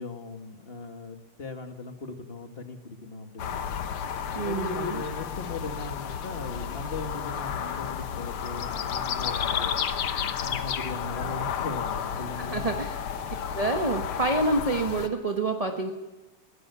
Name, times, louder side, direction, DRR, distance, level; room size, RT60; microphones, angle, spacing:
voice 1, 0.0-3.7 4.4-9.8 10.4-12.8, left 3 dB, 30° left, 5 dB, 1.9 m, -39 dB
sound 1, 3.4-15.1, left 8 dB, 80° left, 2.0 m, -32 dB
voice 2, 4.3-5.0 12.4-13.0 13.5-15.9, right 2 dB, 20° right, 4 dB, 1.0 m, -27 dB
22.0 x 18.5 x 7.0 m, 1.1 s
omnidirectional pair, 2.4 m